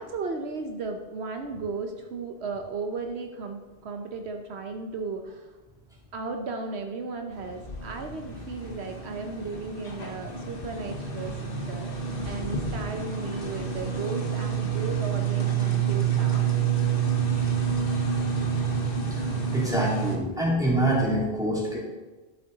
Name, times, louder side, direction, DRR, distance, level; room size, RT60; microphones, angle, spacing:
voice 1, 0.0-5.5 6.1-11.3 11.7-11.9 12.2-16.4, right 4 dB, 75° right, 4 dB, 1.1 m, -35 dB
sound 1, 7.3-20.2, right 7 dB, 55° left, 1.2 m, -28 dB
voice 2, 19.5-21.8, right 1 dB, 5° right, -6 dB, 2.8 m, -25 dB
12.0 x 7.1 x 3.9 m, 1.2 s
omnidirectional pair, 1.1 m